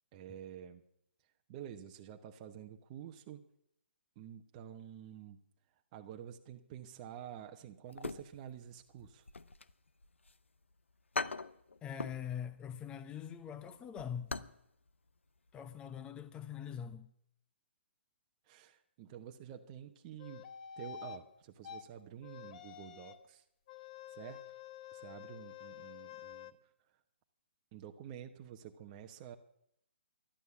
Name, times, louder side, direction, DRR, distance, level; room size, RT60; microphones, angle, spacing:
voice 1, 0.1-0.8 1.5-3.4 4.2-5.4 5.9-9.3 18.4-20.4 20.8-23.4 24.1-24.4 24.9-26.6 27.7-29.4, right 10 dB, 30° right, 1.0 m, -49 dB
sound 1, 7.9-8.7 9.0-10.4 10.7-10.8 11.1-12.3 12.6-12.8 13.2-14.6 14.9-15.0 15.5-15.7 16.0-16.1, left 3 dB, 90° left, 0.8 m, -41 dB
voice 2, 11.8-14.4 15.5-17.1, left 8 dB, 15° left, 1.0 m, -43 dB
sound 2, 20.2-21.2 21.6-21.8 22.2-23.3 23.7-26.5, left 9 dB, 40° left, 1.1 m, -49 dB
12.5 x 11.5 x 8.4 m
hypercardioid pair, 140°, 6 cm